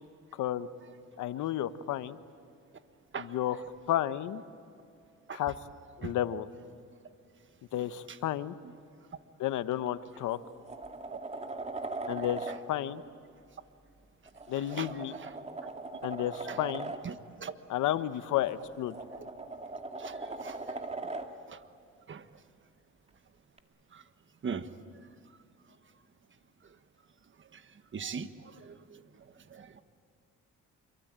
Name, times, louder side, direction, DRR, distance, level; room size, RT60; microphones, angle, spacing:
voice 1, 1.2-2.2 3.2-3.6 3.9-4.4 5.3-5.5 6.0-6.5 7.7-8.5 9.4-10.4 12.1-13.0 14.5-15.1 16.0-16.9 17.7-18.9, left 12 dB, 80° left, 12 dB, 1.1 m, -32 dB
voice 2, 7.7-8.2 8.6-8.7 11.1-11.2 12.2-12.3 14.5-15.3 16.4-16.6 17.0-17.5 17.9-18.0 20.0-20.6 21.5-21.6 22.1-22.2 23.9-24.0 24.4-24.7 27.5-27.6 27.9-29.0 29.5-29.8, right 6 dB, 40° right, 11 dB, 1.4 m, -41 dB
sound 1, 9.7-9.9 10.3-12.6 14.3-17.0 18.5-21.3 23.6-23.7, right 2 dB, 20° right, 2.2 m, -40 dB
27.5 x 23.5 x 8.9 m, 2.5 s
cardioid pair, 90°, 30 cm